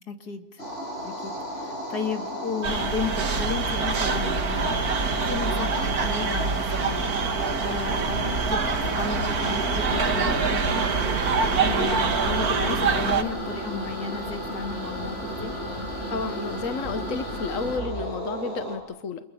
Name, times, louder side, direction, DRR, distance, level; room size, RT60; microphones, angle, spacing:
voice 1, 0.1-0.6 1.0-11.2 11.6-15.6, left 5 dB, 80° left, 6 dB, 2.8 m, -34 dB
sound 1, 0.6-18.8, equal, 40° left, 8.0 m, -33 dB
sound 2, 2.6-13.2, right 5 dB, 70° right, 2.2 m, -25 dB
voice 2, 16.1-19.2, left 4 dB, 55° left, 9 dB, 1.5 m, -32 dB
30.0 x 28.0 x 7.1 m, 0.92 s
omnidirectional pair, 1.7 m